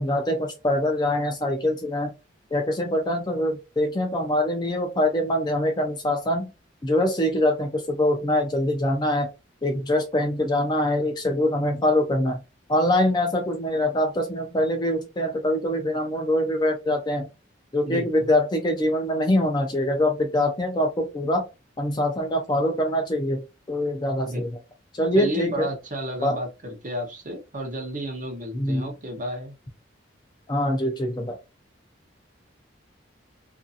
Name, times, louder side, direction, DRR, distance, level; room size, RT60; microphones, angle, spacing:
voice 1, 0.0-2.1 2.5-6.5 6.8-9.3 9.6-12.4 12.7-17.3 17.7-21.5 21.8-24.5 24.9-25.7 26.2-26.4 28.5-28.9 30.5-31.3, left 1 dB, 20° left, 4 dB, 0.4 m, -24 dB
voice 2, 17.8-18.3 24.2-24.4 25.1-29.6, right 1 dB, 40° right, 2 dB, 0.6 m, -32 dB
2.7 x 2.5 x 2.3 m, 0.27 s
head